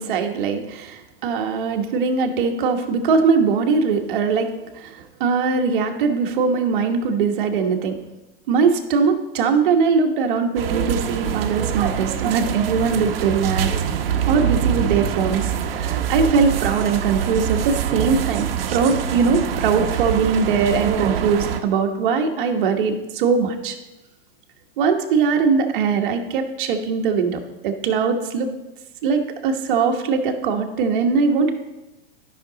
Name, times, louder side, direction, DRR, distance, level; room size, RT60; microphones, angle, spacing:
voice 1, 0.0-8.0 8.5-13.7 14.3-23.8 24.8-28.5 29.0-31.5, right 5 dB, 60° right, 4 dB, 1.2 m, -21 dB
sound 1, 10.6-21.6, right 9 dB, 75° right, 0.9 m, -24 dB
12.0 x 6.0 x 3.9 m, 1.0 s
supercardioid pair, 145°, 29 cm